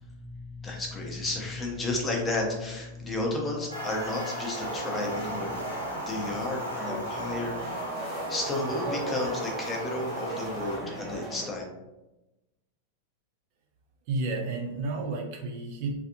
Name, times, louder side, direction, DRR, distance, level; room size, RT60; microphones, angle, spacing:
voice 1, 0.0-5.7 6.1-11.6, left 2 dB, 15° left, -1 dB, 0.6 m, -32 dB
sound 1, 3.7-10.8, right 1 dB, 80° left, 0.7 m, -36 dB
sound 2, 4.5-11.5, right 2 dB, 10° right, 1.1 m, -38 dB
voice 2, 14.1-16.0, right 3 dB, 50° right, 1 dB, 0.4 m, -31 dB
2.5 x 2.3 x 2.5 m, 0.99 s
figure-of-eight pair, 90°, 0 cm